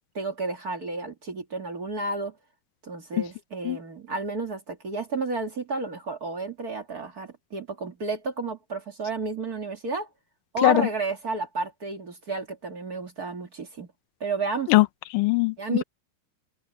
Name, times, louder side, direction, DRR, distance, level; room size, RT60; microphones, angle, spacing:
voice 1, 0.1-2.3 2.8-10.1 10.5-13.9 14.2-14.7 15.6-15.8, right 3 dB, 40° right, 1.4 m, -31 dB
voice 2, 15.1-15.8, left 20 dB, 70° left, 2.1 m, -20 dB
omnidirectional pair, 4.8 m